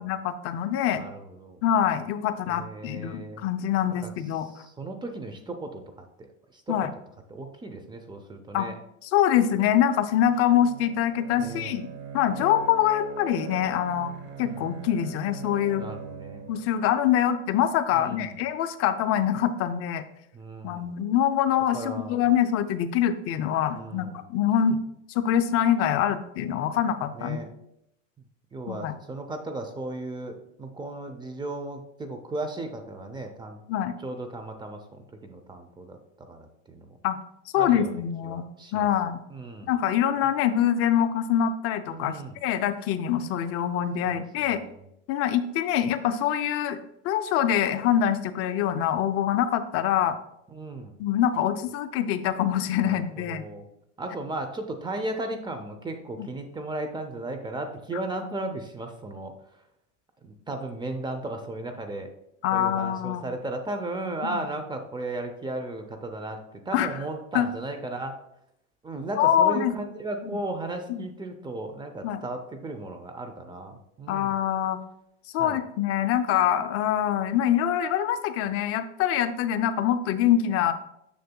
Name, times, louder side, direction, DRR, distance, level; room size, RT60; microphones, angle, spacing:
voice 1, 0.0-1.0 1.6-4.5 6.7-6.9 8.5-8.7 9.0-11.9 12.1-14.1 14.4-15.8 16.5-20.0 20.6-24.8 25.1-27.5 28.7-29.0 33.7-33.9 37.0-37.2 37.5-38.4 38.7-39.2 39.7-44.6 45.1-46.8 47.0-50.2 51.0-53.4 56.2-56.3 57.9-58.0 62.4-63.3 64.2-64.5 66.7-66.9 67.3-67.5 69.2-69.7 70.9-71.0 72.0-72.2 74.1-74.8 75.3-80.7, left 10 dB, 40° left, 10 dB, 0.5 m, -24 dB
voice 2, 1.0-1.6 2.5-3.4 4.0-4.1 4.5-5.8 6.2-6.8 7.3-8.7 11.4-11.7 14.4-14.6 15.8-16.5 17.9-18.3 20.3-21.0 21.7-22.2 23.7-24.2 27.1-27.5 28.5-33.6 34.0-37.0 37.6-38.9 39.3-39.7 41.9-42.4 44.0-44.7 50.5-50.9 52.8-53.7 54.0-59.3 60.2-62.1 62.5-68.2 68.8-74.4 75.4-75.6, right 2 dB, 10° right, 6 dB, 0.6 m, -35 dB
Bowed string instrument, 10.1-17.9, right 6 dB, 30° right, 1.0 m, -41 dB
6.6 x 6.6 x 2.2 m, 0.80 s
supercardioid pair, 120°, 36 cm